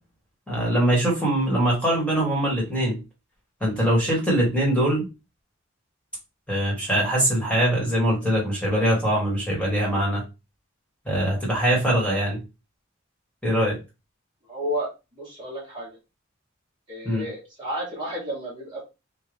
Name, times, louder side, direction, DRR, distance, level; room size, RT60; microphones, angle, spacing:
voice 1, 0.5-3.0 3.6-5.1 6.5-10.2 11.0-12.4 13.4-13.8 17.0-17.2, right 1 dB, 5° left, -4 dB, 1.6 m, -22 dB
voice 2, 14.5-16.0 16.9-18.8, equal, 25° right, -6 dB, 1.3 m, -32 dB
3.8 x 2.5 x 3.4 m, 0.27 s
head